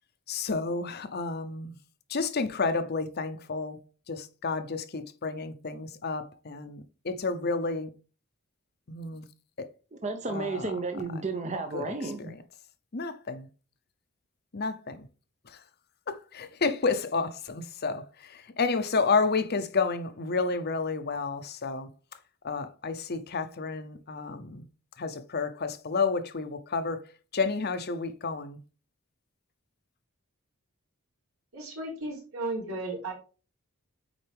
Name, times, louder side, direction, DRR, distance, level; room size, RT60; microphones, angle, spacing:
voice 1, 0.3-1.7 2.1-3.8 4.1-7.9 8.9-9.3 9.6-9.7 10.3-10.7 11.7-11.9 12.2-12.4 12.9-13.5 14.5-15.1 15.4-15.6 16.1-21.9 22.4-24.7 25.0-28.6, left 4 dB, 45° left, 0.8 m, -31 dB
voice 2, 10.0-12.3, right 3 dB, 30° right, 0.7 m, -32 dB
voice 3, 31.5-33.1, right 2 dB, 75° right, 3.9 m, -34 dB
8.9 x 4.4 x 3.5 m
head